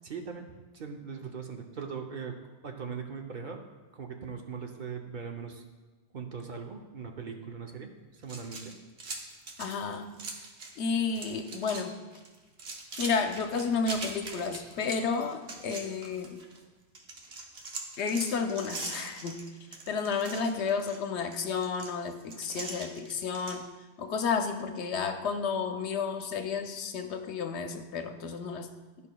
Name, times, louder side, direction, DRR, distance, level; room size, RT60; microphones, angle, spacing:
voice 1, 0.0-2.4 2.6-3.6 3.9-5.6 6.1-8.7, right 6 dB, 50° right, 3 dB, 0.7 m, -40 dB
sound 1, 8.2-10.8 11.1-11.8 12.1-16.6 16.9-23.6, right 3 dB, 70° right, 1.2 m, -42 dB
voice 2, 9.6-10.2 10.8-12.0 13.0-16.4 18.0-19.4 19.9-23.7 24.0-28.7, left 5 dB, 80° left, 7 dB, 0.9 m, -31 dB
12.5 x 5.4 x 2.2 m, 1.3 s
omnidirectional pair, 1.1 m